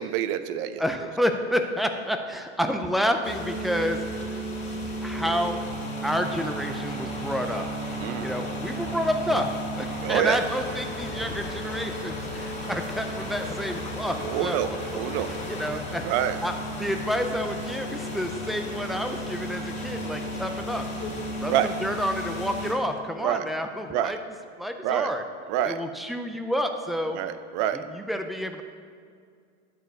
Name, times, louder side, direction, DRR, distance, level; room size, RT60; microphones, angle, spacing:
voice 1, 0.0-0.8 8.0-8.3 10.0-10.4 14.2-15.3 16.0-16.4 21.5-21.7 23.2-23.4 23.9-24.1 24.8-25.1 25.5-25.8 27.1-27.8, right 11 dB, 50° right, 11 dB, 0.7 m, -26 dB
voice 2, 0.8-4.4 5.0-5.6 6.0-7.7 8.2-14.8 15.5-16.1 16.4-20.8 21.4-24.2 24.6-25.2 25.6-27.2 27.7-28.6, equal, ahead, 6 dB, 0.3 m, -29 dB
sound 1, 3.2-22.7, equal, 20° left, 2.2 m, -33 dB
10.5 x 4.7 x 7.6 m, 2.2 s
supercardioid pair, 135°, 36 cm